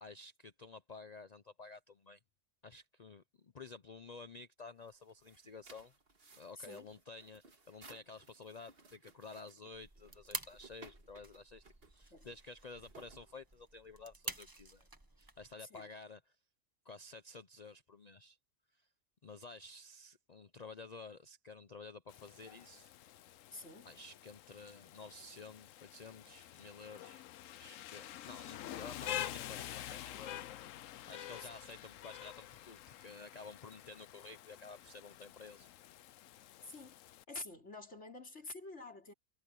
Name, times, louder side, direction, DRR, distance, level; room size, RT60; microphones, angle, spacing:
voice 1, 0.0-2.2 2.6-5.9 6.4-11.6 11.9-14.9 15.2-16.2 16.8-18.4 18.7-18.9 19.2-22.9 23.8-27.2 27.6-30.5 31.1-35.7, left 3 dB, 40° left, 0.6 m, -52 dB
sound 1, 4.8-13.9, right 3 dB, 50° right, 2.2 m, -61 dB
voice 2, 6.6-6.9 12.1-12.3 15.6-15.9 23.5-23.9 36.6-36.9 37.3-39.1, left 2 dB, 60° left, 4.7 m, -48 dB
sound 2, 9.7-15.5, right 2 dB, 15° right, 1.5 m, -49 dB
Rain, 22.1-37.2, left 13 dB, 85° left, 1.0 m, -48 dB
omnidirectional pair, 1.3 m